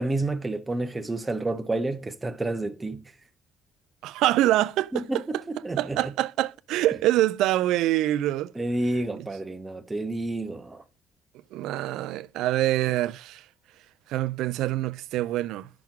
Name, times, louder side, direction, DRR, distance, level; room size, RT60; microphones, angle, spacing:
voice 1, 0.0-3.0 4.9-6.1 8.5-10.8, right 2 dB, 15° right, 0.9 m, -30 dB
voice 2, 4.0-4.9 5.8-8.5 11.5-13.4 14.1-15.7, right 14 dB, 80° right, 0.3 m, -25 dB
5.8 x 3.6 x 6.0 m
cardioid pair, 100°, 0 cm